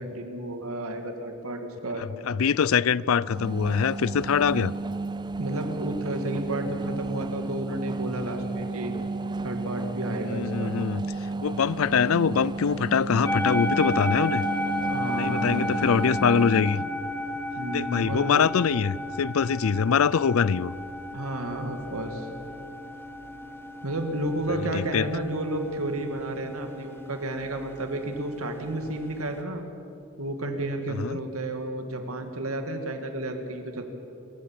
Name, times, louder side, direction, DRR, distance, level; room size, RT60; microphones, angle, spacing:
voice 1, 0.0-2.0 5.4-8.9 9.4-10.7 14.9-15.8 17.6-18.5 21.1-22.3 23.8-29.6 30.2-33.8, right 1 dB, 85° right, 2.4 m, -32 dB
voice 2, 2.0-4.7 10.2-11.0 11.4-14.4 15.2-16.8 17.7-20.7 24.6-25.1 31.0-31.2, left 6 dB, 70° left, 0.5 m, -24 dB
sound 1, 3.3-16.9, right 3 dB, 20° right, 0.4 m, -33 dB
sound 2, 13.2-29.4, left 1 dB, 10° left, 1.2 m, -33 dB
27.5 x 15.0 x 7.5 m
head